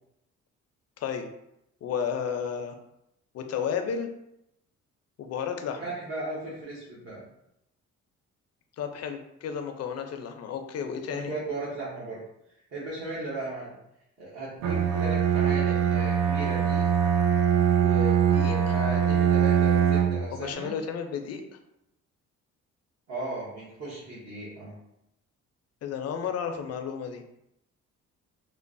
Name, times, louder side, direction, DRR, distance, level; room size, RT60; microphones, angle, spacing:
voice 1, 1.0-1.3 1.8-2.7 3.3-4.1 5.2-5.9 8.8-11.3 18.3-18.7 20.3-21.6 25.8-27.2, left 7 dB, 55° left, 6 dB, 0.5 m, -32 dB
voice 2, 5.8-7.2 11.1-12.2 12.7-13.8 14.2-16.9 17.7-20.7 23.1-24.7, right 1 dB, 60° right, -9 dB, 1.0 m, -36 dB
Bowed string instrument, 14.6-20.3, right 8 dB, 80° right, 0.5 m, -23 dB
3.0 x 2.0 x 2.5 m, 0.82 s
cardioid pair, 90°, 30 cm